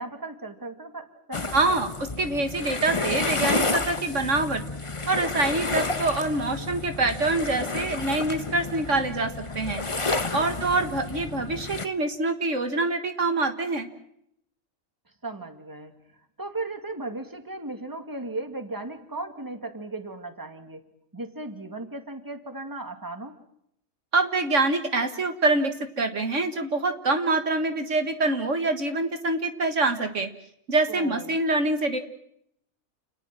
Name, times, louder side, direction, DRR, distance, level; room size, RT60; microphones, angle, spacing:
voice 1, 0.0-1.9 10.1-10.6 15.2-15.9 16.4-20.8 21.1-23.4 30.9-31.4, right 2 dB, 15° right, 7 dB, 2.4 m, -36 dB
sound 1, 1.3-11.9, left 3 dB, 25° left, 1.2 m, -30 dB
voice 2, 1.5-1.9 2.2-4.6 5.1-9.8 10.3-13.9 24.1-30.3 30.7-32.0, right 2 dB, 60° right, 7 dB, 2.0 m, -25 dB
29.5 x 19.5 x 7.6 m, 0.73 s
omnidirectional pair, 1.4 m